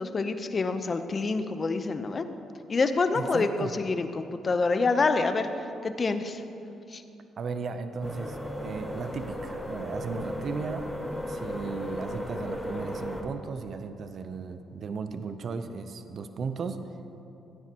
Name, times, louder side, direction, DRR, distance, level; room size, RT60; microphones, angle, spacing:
voice 1, 0.0-2.3 2.7-5.5 5.8-6.4 6.9-7.0, left 3 dB, 35° left, 9 dB, 0.7 m, -27 dB
voice 2, 3.1-3.7 7.4-10.9 11.3-16.8, right 5 dB, 55° right, 9 dB, 0.6 m, -36 dB
sound 1, 8.0-13.2, equal, ahead, 1.3 m, -35 dB
15.5 x 9.5 x 2.9 m, 2.7 s
cardioid pair, 90°, 0 cm